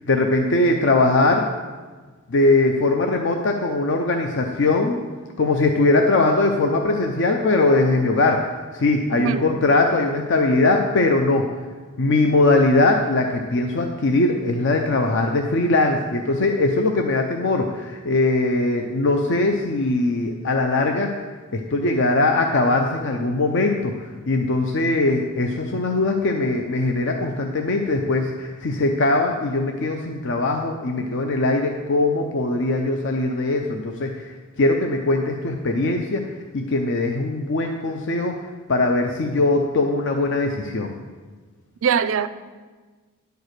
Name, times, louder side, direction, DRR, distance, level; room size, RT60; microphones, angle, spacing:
voice 1, 0.1-1.5 2.3-5.0 5.4-8.5 8.7-11.5 12.0-21.1 21.5-34.3 34.6-36.2 36.5-38.3 38.7-41.0, left 2 dB, 55° left, 3 dB, 0.6 m, -20 dB
voice 2, 9.1-9.5 41.8-42.3, right 7 dB, 65° right, 13 dB, 0.4 m, -22 dB
10.5 x 4.6 x 6.5 m, 1.4 s
head